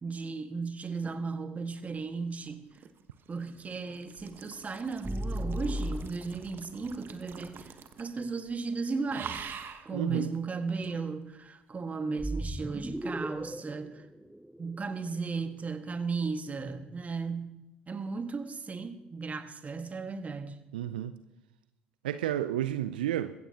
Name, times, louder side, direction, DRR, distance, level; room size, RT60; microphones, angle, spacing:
voice 1, 0.0-2.6 3.3-9.5 9.8-14.1 14.6-17.5 17.9-20.6, right 4 dB, 30° right, 1.6 m, -35 dB
sound 1, 2.5-8.2 8.5-8.7 9.1-9.9 10.8-11.0, right 7 dB, 45° right, 1.2 m, -45 dB
sound 2, 5.0-6.6 12.2-15.3, equal, 5° right, 0.4 m, -36 dB
voice 2, 9.9-10.3 20.7-21.1 22.0-23.3, right 12 dB, 75° right, 0.5 m, -31 dB
21.0 x 16.0 x 2.9 m
figure-of-eight pair, 55°, 5 cm